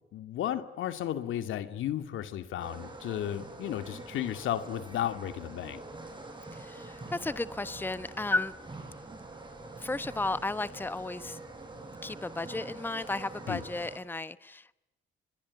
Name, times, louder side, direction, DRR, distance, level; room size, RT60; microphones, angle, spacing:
voice 1, 0.1-5.8 13.5-13.6, left 11 dB, 80° left, 10 dB, 2.3 m, -34 dB
sound 1, 2.6-14.0, right 2 dB, 25° right, 7.3 m, -45 dB
voice 2, 6.5-8.5 9.8-11.4 12.0-14.7, left 2 dB, 10° left, 15 dB, 1.0 m, -34 dB
28.0 x 22.0 x 9.5 m, 0.96 s
cardioid pair, 90°, 20 cm